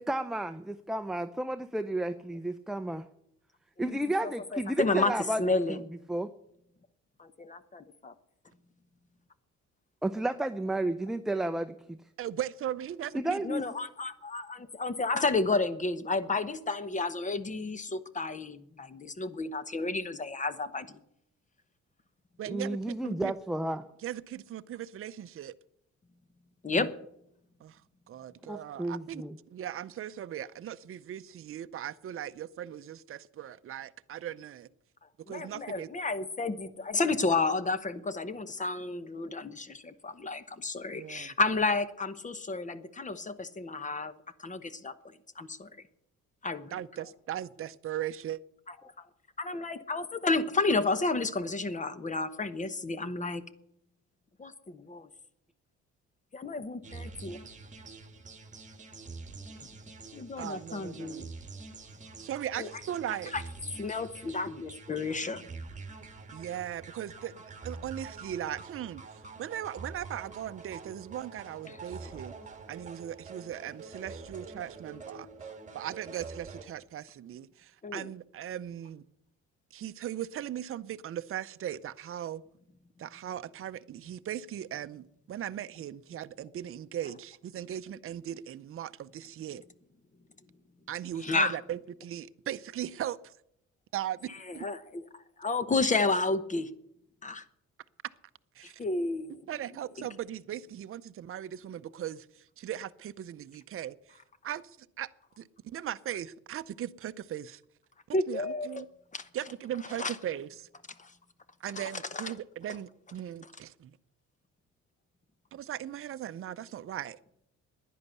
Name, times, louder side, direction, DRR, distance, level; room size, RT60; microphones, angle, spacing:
voice 1, 0.0-3.0 3.8-5.4 5.7-5.8 6.1-6.3 10.0-12.0 13.1-13.7 22.5-23.9 26.8-26.9 28.4-29.4, right 1 dB, ahead, 0.6 m, -32 dB
voice 2, 4.2-5.1 5.4-5.8 7.2-8.1 13.4-21.0 26.6-26.9 35.3-44.1 44.4-45.7 46.4-46.8 48.7-49.1 49.4-53.4 54.4-55.1 56.3-57.4 60.1-61.2 62.5-62.8 63.1-63.4 63.8-65.4 71.7-71.8 72.0-72.2 77.8-78.1 91.2-91.6 94.3-96.7 97.2-97.4 98.8-99.4 100.0-100.1 108.1-108.8 109.1-109.3 109.9-110.2 111.0-111.1 111.7-112.3 113.4-113.5, left 3 dB, 25° left, 1.0 m, -31 dB
voice 3, 12.2-13.4 22.4-23.3 24.0-25.5 27.6-27.7 28.1-29.2 29.5-34.7 35.3-35.9 40.9-41.3 46.7-48.4 60.4-61.2 62.2-63.3 66.3-67.3 67.6-69.0 69.4-72.3 72.7-75.3 75.7-77.5 77.9-79.0 79.7-82.4 83.0-89.6 90.9-93.2 93.9-94.6 98.6-98.7 99.5-102.2 102.6-103.9 104.4-104.6 105.0-105.1 105.4-105.5 105.7-107.6 108.3-108.8 109.3-110.5 111.6-113.9 115.5-117.2, right 11 dB, 50° right, 0.6 m, -38 dB
sound 1, 56.8-76.6, right 4 dB, 25° right, 1.6 m, -46 dB
11.0 x 10.5 x 8.1 m
cardioid pair, 105°, 29 cm